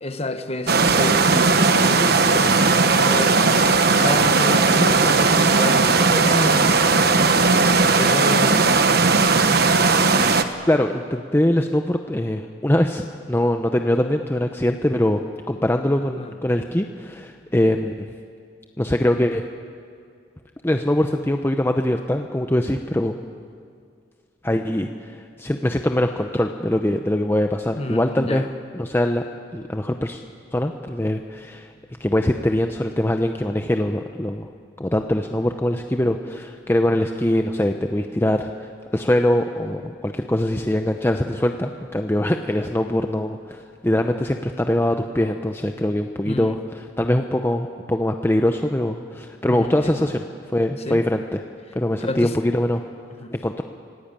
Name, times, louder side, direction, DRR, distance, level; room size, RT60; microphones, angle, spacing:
voice 1, 0.0-3.4 3.9-9.1 16.2-16.3 27.8-28.5 46.2-46.6 49.5-50.1 50.9-51.0 52.0-52.3 53.2-53.3, left 1 dB, 30° left, 8 dB, 1.2 m, -29 dB
sound 1, 0.7-10.4, right 4 dB, 55° right, 1.1 m, -17 dB
voice 2, 10.7-15.2 15.5-18.1 18.8-19.4 20.6-23.2 24.4-28.5 28.7-29.2 29.5-30.2 30.5-31.7 32.0-34.5 34.8-51.4 51.7-52.8 53.3-53.6, left 1 dB, 10° left, 5 dB, 0.7 m, -22 dB
26.5 x 17.5 x 8.9 m, 2.3 s
head